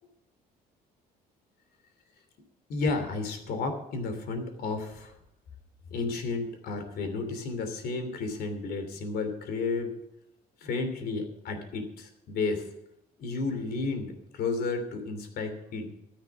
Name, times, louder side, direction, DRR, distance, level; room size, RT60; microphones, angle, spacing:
voice 1, 2.7-5.1 5.9-9.9 10.6-12.7 13.2-16.0, left 3 dB, 70° left, 7 dB, 3.0 m, -32 dB
13.0 x 11.0 x 6.1 m, 0.84 s
cardioid pair, 110°, 17 cm